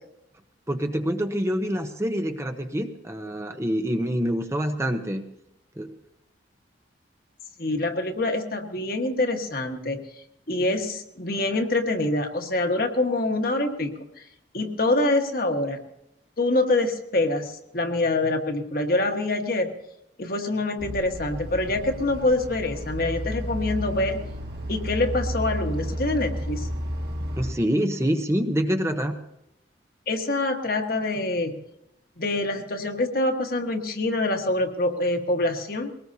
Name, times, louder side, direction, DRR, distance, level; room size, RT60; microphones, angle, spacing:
voice 1, 0.7-5.2 5.8-6.0 27.4-29.2, equal, 15° right, 6 dB, 0.8 m, -26 dB
voice 2, 7.6-10.0 10.5-13.9 14.5-15.8 16.4-19.7 20.2-24.2 24.7-26.7 30.1-31.6 32.2-35.9, left 2 dB, 50° left, 4 dB, 1.5 m, -25 dB
sound 1, 20.8-27.5, equal, 60° right, 2.1 m, -32 dB
22.0 x 18.5 x 2.8 m, 0.83 s
head